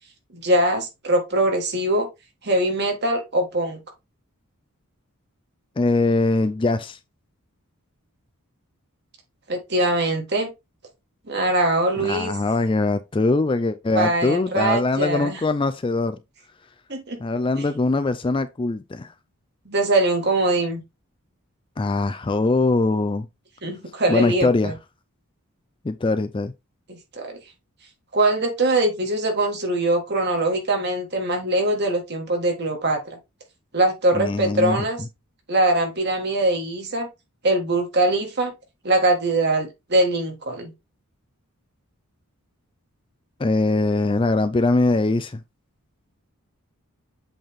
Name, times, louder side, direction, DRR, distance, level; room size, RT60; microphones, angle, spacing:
voice 1, 0.3-2.1 2.4-3.8 9.5-10.5 11.3-12.3 13.9-15.4 16.9-17.2 19.7-20.8 23.6-24.7 26.9-27.4 28.1-33.2 33.7-35.0 35.5-37.1 37.4-38.5 38.8-40.7, right 2 dB, 50° right, 1.8 m, -22 dB
voice 2, 5.8-7.0 12.0-16.2 17.2-19.1 21.8-23.3 24.1-24.7 25.8-26.5 34.1-34.9 43.4-45.4, left 2 dB, 25° left, 0.3 m, -22 dB
7.8 x 3.4 x 3.6 m
head